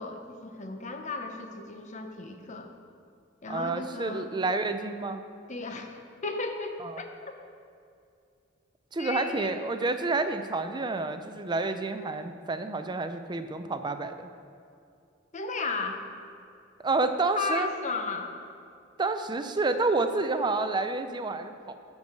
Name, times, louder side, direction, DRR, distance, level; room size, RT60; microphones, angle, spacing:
voice 1, 0.0-2.7 3.4-4.3 5.5-7.3 9.0-9.5 15.3-16.0 17.4-18.3, left 3 dB, 40° left, 5 dB, 0.8 m, -35 dB
voice 2, 3.5-5.2 6.8-7.0 8.9-14.3 16.8-17.7 19.0-21.7, right 3 dB, 25° right, 9 dB, 0.5 m, -29 dB
10.5 x 4.7 x 6.6 m, 2.4 s
head